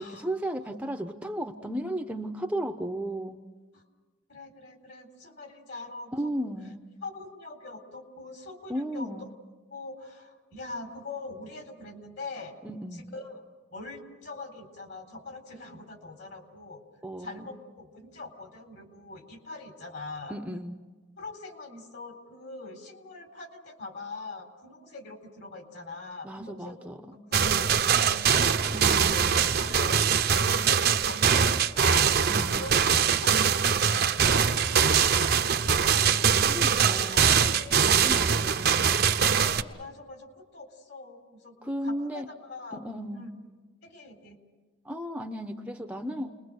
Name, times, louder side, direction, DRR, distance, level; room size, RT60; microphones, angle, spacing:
voice 1, 0.0-3.4 6.1-6.9 8.7-9.3 12.6-13.0 17.0-17.6 20.3-20.8 26.2-27.2 28.7-29.3 32.3-32.6 36.3-39.1 41.6-42.3 42.7-43.3 44.8-46.3, right 1 dB, 5° right, 5 dB, 0.9 m, -35 dB
voice 2, 4.3-6.5 7.0-9.3 9.7-12.6 12.9-13.4 13.7-16.8 17.2-20.3 21.2-26.9 27.3-28.6 29.0-32.1 32.5-38.9 39.3-42.8 43.1-43.5 43.8-44.4, left 3 dB, 55° left, 5 dB, 4.1 m, -43 dB
sound 1, 27.3-39.6, right 7 dB, 50° right, 0.9 m, -23 dB
29.5 x 22.0 x 6.5 m, 1.3 s
head